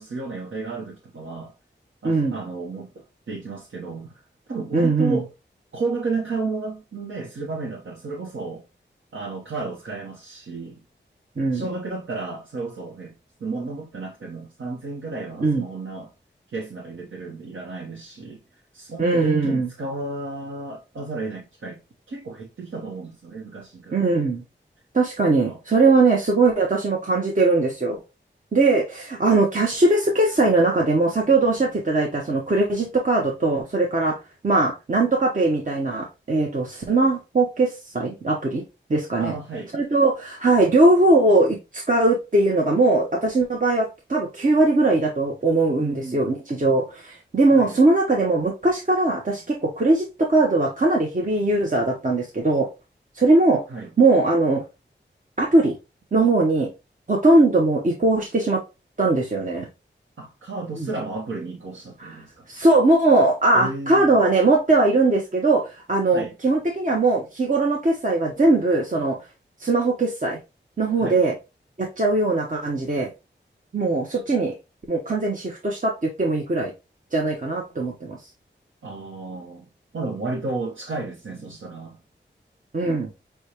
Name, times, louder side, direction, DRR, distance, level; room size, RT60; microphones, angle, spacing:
voice 1, 0.0-1.5 2.0-4.2 4.5-5.3 5.7-8.6 9.1-10.8 11.5-13.1 13.4-16.1 16.5-18.4 18.7-21.8 22.1-24.3 25.4-25.6 39.2-39.7 45.8-46.2 47.5-47.7 53.7-53.9 60.2-62.5 63.5-64.1 66.1-66.3 71.0-71.2 78.8-82.0, right 3 dB, 80° right, 0.9 m, -32 dB
voice 2, 2.0-2.4 4.7-5.2 11.4-11.6 15.4-15.7 19.0-19.7 23.9-24.4 24.9-28.0 28.5-34.2 34.4-38.6 38.9-39.3 39.7-52.7 53.1-53.6 54.0-54.6 55.4-55.7 56.1-56.7 57.1-58.6 59.0-59.7 60.8-60.9 62.0-62.2 62.5-69.2 69.6-70.4 70.8-71.3 71.8-73.1 73.7-74.5 74.9-76.7 77.1-78.3 82.7-83.1, right 2 dB, 40° right, 0.9 m, -20 dB
6.3 x 2.2 x 2.9 m
cardioid pair, 40°, 20 cm